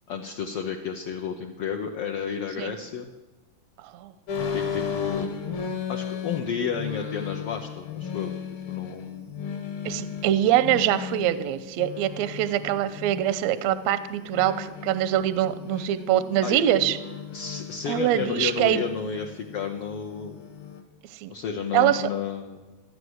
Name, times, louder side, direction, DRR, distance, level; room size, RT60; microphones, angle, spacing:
voice 1, 0.1-3.1 4.5-5.3 5.9-8.4 8.7-9.4 16.4-16.6 17.3-20.4 21.3-22.8, left 7 dB, 80° left, 3 dB, 1.3 m, -32 dB
sound 1, 4.3-20.8, left 7 dB, 60° left, 2.4 m, -36 dB
voice 2, 9.8-17.0 17.9-18.8 21.2-21.3 21.7-22.1, right 12 dB, 80° right, 13 dB, 1.5 m, -24 dB
14.5 x 9.4 x 7.9 m, 1.2 s
omnidirectional pair, 3.8 m